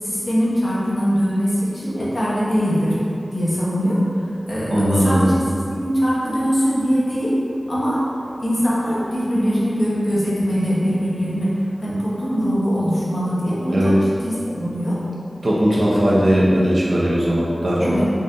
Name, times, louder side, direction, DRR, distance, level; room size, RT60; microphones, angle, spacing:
voice 1, 0.0-3.0 3.3-4.0 4.5-5.3 5.7-7.3 7.7-8.0 8.4-11.5 11.8-13.9 14.2-15.0 17.8-18.0, equal, 50° left, -9 dB, 1.2 m, -21 dB
voice 2, 4.7-5.3 13.7-14.0 15.4-17.9, equal, 65° right, -7 dB, 0.8 m, -18 dB
4.0 x 2.7 x 3.7 m, 2.6 s
wide cardioid pair, 75°, 0 cm